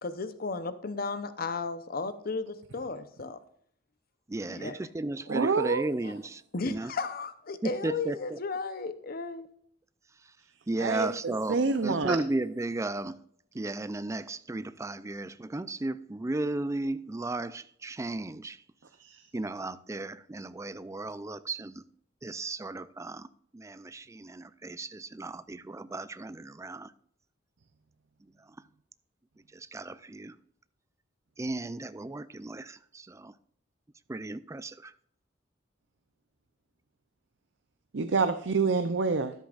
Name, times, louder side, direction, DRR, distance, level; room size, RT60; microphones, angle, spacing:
voice 1, 0.0-3.4 4.5-4.8 6.5-9.5, left 4 dB, 50° left, 0.7 m, -34 dB
voice 2, 4.3-6.9 7.6-8.4 10.2-10.3 10.7-13.2 13.5-18.6 19.3-21.8 22.2-26.9 28.2-28.6 29.5-30.4 31.4-33.3 34.1-34.9, right 2 dB, 15° right, 0.4 m, -35 dB
voice 3, 5.3-5.8 10.8-12.2 19.0-19.2 37.9-39.3, right 4 dB, 70° right, 0.6 m, -27 dB
13.0 x 10.5 x 2.4 m
head